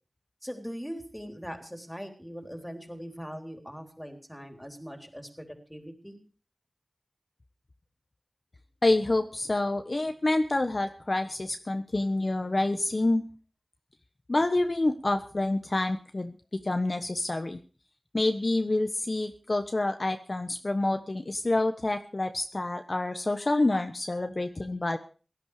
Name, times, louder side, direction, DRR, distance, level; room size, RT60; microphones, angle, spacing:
voice 1, 0.4-6.2, equal, 5° left, 5 dB, 3.8 m, -41 dB
voice 2, 8.8-13.2 14.3-16.3 16.6-17.6 18.1-25.0, left 2 dB, 50° left, 7 dB, 1.2 m, -27 dB
17.0 x 11.5 x 5.0 m, 0.38 s
wide cardioid pair, 45°, 0 cm